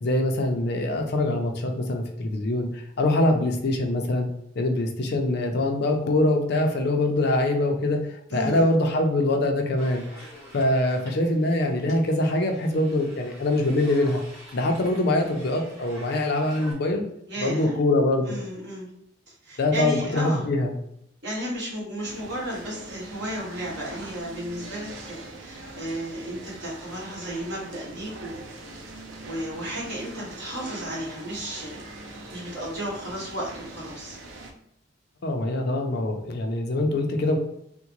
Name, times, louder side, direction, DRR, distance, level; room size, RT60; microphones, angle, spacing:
voice 1, 0.0-4.3 4.6-10.0 10.5-14.2 14.5-17.0 17.4-18.4 19.6-20.7 35.2-37.4, left 1 dB, 55° left, 3 dB, 0.5 m, -24 dB
voice 2, 8.3-8.7 17.3-17.7 18.2-18.9 19.3-20.4 21.2-28.4 29.2-31.8 32.3-34.2, right 1 dB, 60° right, -5 dB, 1.4 m, -34 dB
sound 1, 9.8-16.7, right 1 dB, 15° right, 1.3 m, -47 dB
sound 2, 22.0-34.5, right 2 dB, 85° right, 0.6 m, -42 dB
3.6 x 2.1 x 2.9 m, 0.77 s
head